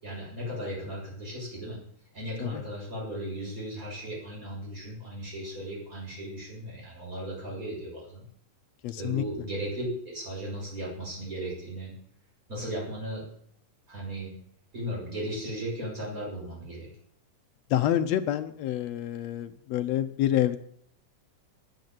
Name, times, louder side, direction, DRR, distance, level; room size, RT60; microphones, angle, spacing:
voice 1, 0.0-1.8 2.1-8.2 9.0-11.9 12.5-13.2 13.9-14.3 14.7-16.9, right 1 dB, 25° right, -4 dB, 7.4 m, -36 dB
voice 2, 8.8-9.2 17.7-20.6, left 12 dB, 75° left, 9 dB, 1.6 m, -27 dB
11.0 x 9.6 x 9.2 m, 0.65 s
omnidirectional pair, 3.8 m